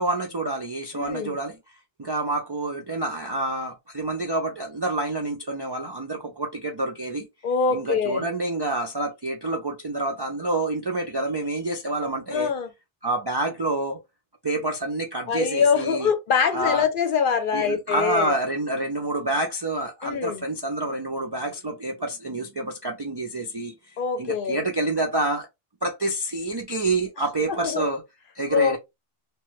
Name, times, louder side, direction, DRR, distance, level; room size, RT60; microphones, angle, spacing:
voice 1, 0.0-1.6 2.0-7.3 7.7-12.5 13.0-14.0 14.4-16.1 16.5-16.8 17.5-25.5 25.8-28.0 28.4-28.8, right 2 dB, 45° right, 0.3 m, -28 dB
voice 2, 0.9-1.4 7.4-8.2 12.3-12.7 15.3-18.4 20.0-20.4 24.0-24.6 27.5-27.8 28.5-28.8, left 6 dB, 60° left, 0.7 m, -24 dB
2.9 x 2.2 x 3.1 m
omnidirectional pair, 1.0 m